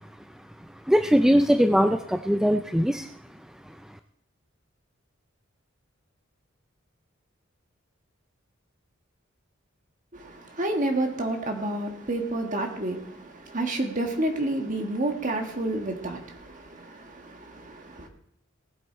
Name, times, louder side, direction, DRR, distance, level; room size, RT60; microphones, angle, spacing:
voice 1, 0.9-3.1, equal, 5° right, 0.3 m, -21 dB
voice 2, 10.1-18.1, right 1 dB, 40° right, 1.7 m, -30 dB
19.5 x 8.1 x 4.4 m
head